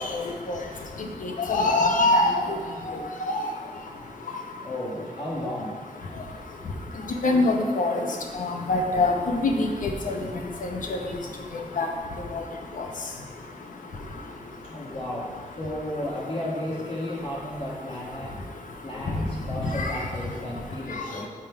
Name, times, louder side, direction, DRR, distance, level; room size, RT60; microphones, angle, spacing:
voice 1, 1.2-2.4 2.8-3.0 3.3-3.4 7.2-8.0 8.4-9.1 9.4-9.7 10.1-10.2 10.6-11.0 11.8-11.9 12.8-12.9 19.8-19.9, left 2 dB, 75° left, 3 dB, 0.8 m, -23 dB
voice 2, 4.6-5.7 14.7-15.3 15.6-18.4 18.8-21.3, left 1 dB, 40° left, -6 dB, 1.4 m, -33 dB
7.6 x 3.6 x 4.5 m, 1.5 s
wide cardioid pair, 90°, 14 cm